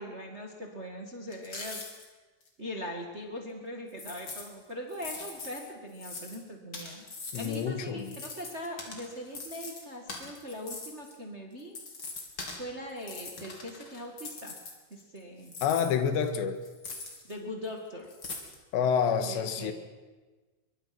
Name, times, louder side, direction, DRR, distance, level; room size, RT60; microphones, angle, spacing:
voice 1, 0.0-2.1 2.6-7.0 7.3-11.7 12.6-14.5 14.9-15.5 17.3-18.1 19.3-19.7, equal, 35° right, 2 dB, 1.0 m, -41 dB
sound 1, 1.3-2.1 2.4-2.5 3.9-4.5 4.9-6.4 6.7-7.6 8.0-11.2 11.6-12.6 13.0-15.2 15.4-17.3 17.6-17.7 18.1-18.6, left 3 dB, 30° left, 3.6 m, -42 dB
voice 2, 7.3-8.2 15.6-16.6 18.7-19.7, left 7 dB, 80° left, 9 dB, 3.7 m, -28 dB
24.0 x 23.0 x 6.1 m, 1.3 s
omnidirectional pair, 5.1 m